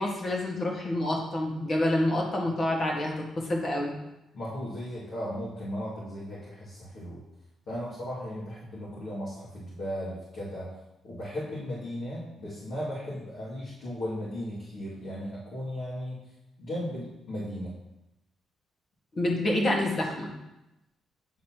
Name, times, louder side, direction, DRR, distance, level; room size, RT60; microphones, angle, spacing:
voice 1, 0.0-3.9 19.1-20.3, left 1 dB, 40° left, -1 dB, 1.6 m, -28 dB
voice 2, 4.3-7.2 7.7-10.7 11.0-16.2 16.6-17.7, equal, 70° left, -11 dB, 2.2 m, -36 dB
9.6 x 4.2 x 2.9 m, 0.92 s
cardioid pair, 90°, 0 cm